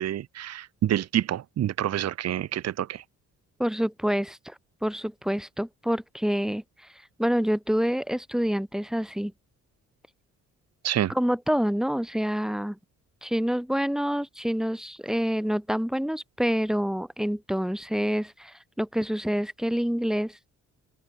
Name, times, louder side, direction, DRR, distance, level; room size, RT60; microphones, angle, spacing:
voice 1, 0.0-3.0 10.8-11.1, right 11 dB, 55° right, 1.0 m, -27 dB
voice 2, 3.6-4.5 4.8-6.6 7.2-9.3 11.1-12.8 13.2-20.4, equal, ahead, 2.4 m, -27 dB
cardioid pair, 90°, 30 cm